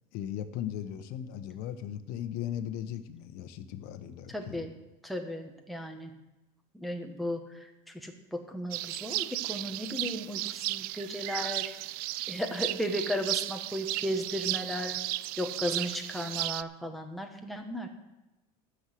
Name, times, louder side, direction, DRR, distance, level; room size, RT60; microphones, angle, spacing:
voice 1, 0.1-4.6, left 10 dB, 65° left, 11 dB, 1.1 m, -37 dB
voice 2, 4.3-4.7 5.0-6.1 6.7-11.7 12.3-15.0 15.4-17.9, equal, ahead, 2 dB, 1.5 m, -35 dB
sound 1, 8.7-16.6, right 18 dB, 60° right, 0.4 m, -34 dB
13.5 x 6.4 x 7.7 m, 1.0 s
cardioid pair, 135°, 17 cm